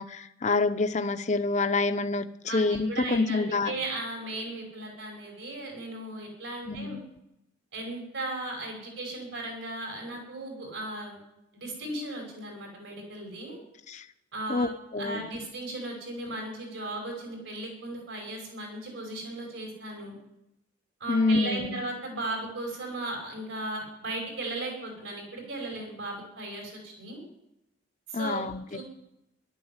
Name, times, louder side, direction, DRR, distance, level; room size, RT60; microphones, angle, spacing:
voice 1, 0.0-3.7 6.7-7.0 13.9-14.0 14.5-15.3 21.1-21.8 28.1-28.8, left 3 dB, 40° left, 10 dB, 0.7 m, -27 dB
voice 2, 2.5-7.0 7.7-11.2 11.5-13.6 14.3-14.7 15.0-20.2 21.0-27.2 28.1-28.4 28.7-28.8, right 2 dB, 75° right, 1 dB, 5.6 m, -36 dB
14.5 x 12.0 x 8.1 m, 0.87 s
head